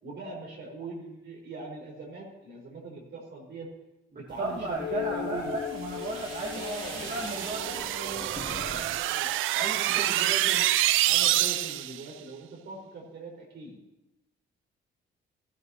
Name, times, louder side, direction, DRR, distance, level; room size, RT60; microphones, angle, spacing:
voice 1, 0.0-3.7 4.1-5.6 6.5-9.3 9.8-10.6 11.1-13.8, right 3 dB, 60° right, 0 dB, 4.7 m, -41 dB
voice 2, 4.1-6.6 7.0-7.8 9.5-10.6, right 2 dB, 40° right, -2 dB, 1.9 m, -35 dB
sound 1, 4.3-9.0 9.3-9.9, left 2 dB, 20° left, 2.2 m, -45 dB
sound 2, 4.8-9.7, left 12 dB, 65° left, 0.6 m, -39 dB
sound 3, 6.0-12.0, right 14 dB, 85° right, 0.5 m, -27 dB
16.5 x 14.5 x 2.9 m, 0.96 s
cardioid pair, 90°, 20 cm